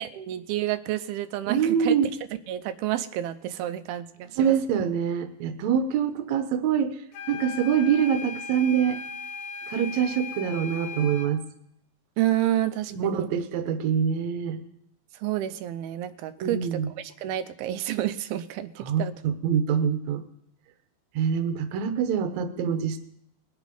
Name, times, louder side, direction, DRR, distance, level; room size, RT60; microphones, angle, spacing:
voice 1, 0.0-1.9 2.5-4.5 12.2-13.3 15.2-19.1, right 13 dB, 90° right, 10 dB, 2.6 m, -29 dB
voice 2, 1.5-2.1 4.4-6.9 7.3-9.0 9.7-11.4 12.9-14.6 16.4-16.9 18.8-20.2 21.2-23.0, right 8 dB, 65° right, 8 dB, 2.0 m, -25 dB
sound 1, 7.1-11.4, left 5 dB, 85° left, 3.0 m, -38 dB
20.5 x 8.2 x 5.4 m, 0.74 s
omnidirectional pair, 4.3 m